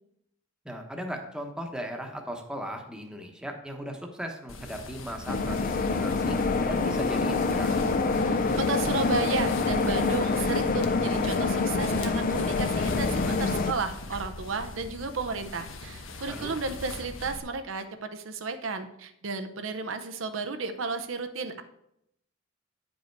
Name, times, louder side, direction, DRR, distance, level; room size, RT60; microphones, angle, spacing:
voice 1, 0.6-6.4 6.6-7.9 16.3-16.5, equal, 5° right, 3 dB, 0.9 m, -37 dB
sound 1, 4.5-17.4, left 3 dB, 85° left, 1.0 m, -40 dB
sound 2, 5.3-13.7, left 3 dB, 45° left, 0.5 m, -26 dB
voice 2, 8.2-21.6, right 3 dB, 85° right, 8 dB, 0.7 m, -33 dB
9.3 x 5.3 x 4.6 m, 0.77 s
head